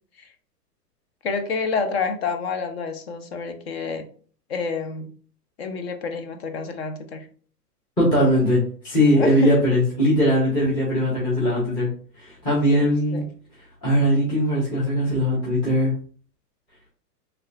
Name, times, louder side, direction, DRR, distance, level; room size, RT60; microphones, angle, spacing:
voice 1, 1.2-4.1 4.5-5.1 5.6-7.3 9.1-9.4 12.8-13.3, left 4 dB, 40° left, 7 dB, 0.5 m, -28 dB
voice 2, 8.0-8.6 8.8-11.9 12.2-13.2 13.8-15.9, equal, 10° left, -6 dB, 0.7 m, -20 dB
3.2 x 2.7 x 2.4 m, 0.43 s
hypercardioid pair, 150°, 49 cm